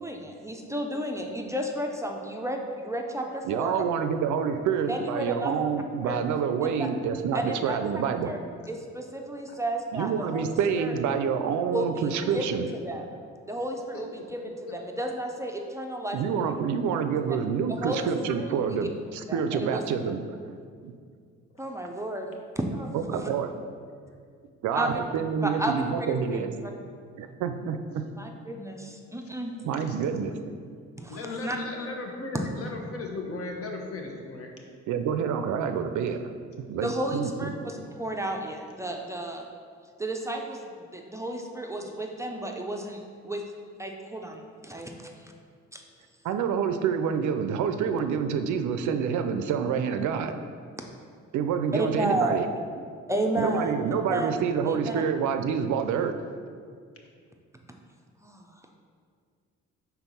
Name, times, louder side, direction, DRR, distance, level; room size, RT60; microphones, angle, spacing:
voice 1, 0.0-3.8 4.9-5.6 6.0-6.2 6.8-6.9 7.3-8.4 8.7-10.5 10.8-10.9 11.7-12.4 12.8-13.0 13.5-16.4 17.7-18.0 18.4-18.8 19.3-19.8 21.6-23.3 24.7-25.0 25.4-26.4 28.2-29.5 31.0-31.6 32.3-32.5 36.8-39.5 40.0-43.4 43.8-45.3 45.7-45.8 51.7-52.4 53.1-53.7 54.1-54.3 54.7-55.0 58.2-58.5, right 1 dB, 10° right, 2 dB, 0.5 m, -32 dB
voice 2, 3.4-8.4 9.9-12.7 16.1-20.4 20.8-20.9 22.9-23.5 24.6-26.5 27.2-28.0 29.6-30.3 34.9-36.2 36.7-37.5 46.2-50.3 51.3-52.5 53.4-56.2, right 7 dB, 75° right, 8 dB, 0.5 m, -27 dB
voice 3, 14.4-15.1 29.7-30.0 31.1-34.5, left 3 dB, 50° left, 1 dB, 1.0 m, -37 dB
4.4 x 4.0 x 5.4 m, 2.1 s
cardioid pair, 90°, 30 cm